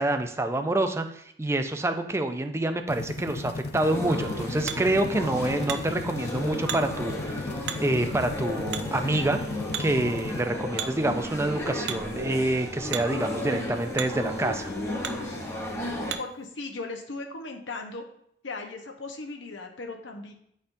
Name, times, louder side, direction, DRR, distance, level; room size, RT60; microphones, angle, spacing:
voice 1, 0.0-7.5 7.8-9.4 9.8-14.7, right 2 dB, 15° right, 7 dB, 0.4 m, -27 dB
sound 1, 2.9-10.4, left 3 dB, 55° left, 0.4 m, -37 dB
sound 2, 3.8-16.1, left 1 dB, 15° left, 0.9 m, -34 dB
Hammer, 3.8-16.5, right 8 dB, 70° right, 0.5 m, -41 dB
voice 2, 16.2-18.0 18.4-20.3, left 3 dB, 85° left, 3 dB, 0.9 m, -37 dB
9.7 x 4.3 x 2.6 m, 0.70 s
head